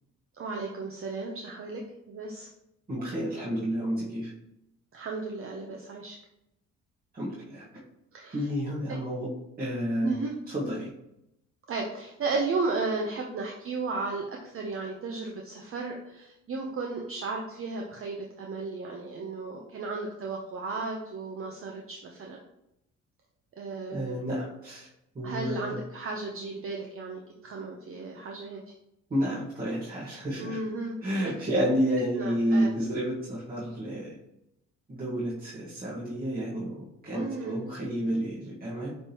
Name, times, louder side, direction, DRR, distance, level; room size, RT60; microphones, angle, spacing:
voice 1, 0.3-2.5 4.9-6.2 8.1-8.5 8.9-9.0 10.0-10.3 11.7-22.4 23.5-24.2 25.2-28.6 30.4-31.6 32.2-32.7 37.1-37.6, right 3 dB, 45° right, 1 dB, 0.8 m, -34 dB
voice 2, 2.9-4.3 7.1-7.6 8.3-9.3 9.6-10.1 10.5-10.9 23.9-24.9 25.1-25.7 29.1-30.6 31.0-34.1 34.9-38.9, equal, 30° right, -7 dB, 1.7 m, -30 dB
9.4 x 3.5 x 3.0 m, 0.84 s
cardioid pair, 90°, 30 cm